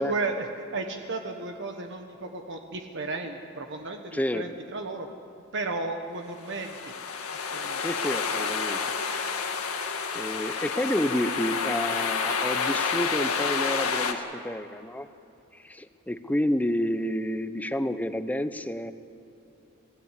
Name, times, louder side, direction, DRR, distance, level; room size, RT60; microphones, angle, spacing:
voice 1, 0.0-5.1 5.5-6.9 7.5-7.9, right 3 dB, 60° right, 4 dB, 1.3 m, -34 dB
voice 2, 4.1-4.5 7.8-9.5 10.1-15.1 15.5-18.9, left 1 dB, 5° left, 11 dB, 0.7 m, -30 dB
sound 1, 6.5-14.1, left 5 dB, 90° left, 1.9 m, -29 dB
27.0 x 16.5 x 8.3 m, 2.9 s
head